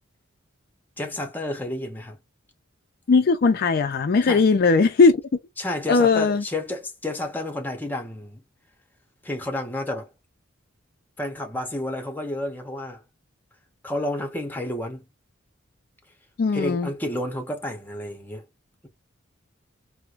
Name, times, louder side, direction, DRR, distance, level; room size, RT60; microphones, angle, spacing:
voice 1, 1.0-2.2 4.2-4.4 5.6-8.4 9.2-10.1 11.2-13.0 13.8-15.0 16.5-18.4, left 1 dB, 10° left, 0.7 m, -30 dB
voice 2, 3.1-5.2 5.9-6.4 16.4-16.9, left 4 dB, 50° left, 0.4 m, -18 dB
4.4 x 2.1 x 2.4 m
head